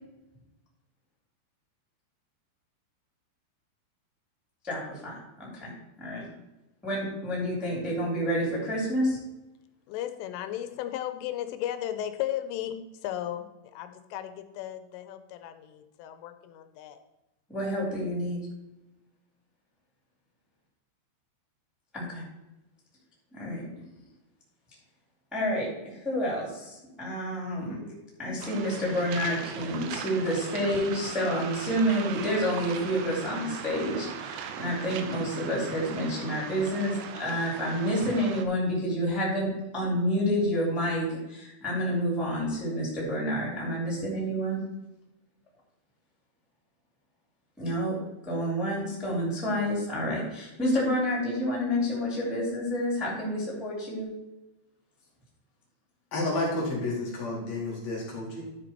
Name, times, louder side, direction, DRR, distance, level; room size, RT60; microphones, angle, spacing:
voice 1, 4.6-5.7 6.0-6.3 6.8-9.2 17.5-18.4 21.9-22.2 23.3-23.6 25.3-44.6 47.6-48.0 48.2-54.1, equal, ahead, -5 dB, 2.0 m, -29 dB
voice 2, 9.9-12.8 13.0-17.0, left 12 dB, 90° left, 9 dB, 3.2 m, -35 dB
Waves surf, 28.4-38.5, right 7 dB, 85° right, 3.0 m, -39 dB
voice 3, 56.1-58.5, left 2 dB, 55° left, -3 dB, 2.0 m, -31 dB
12.5 x 5.2 x 4.4 m, 0.97 s
omnidirectional pair, 5.6 m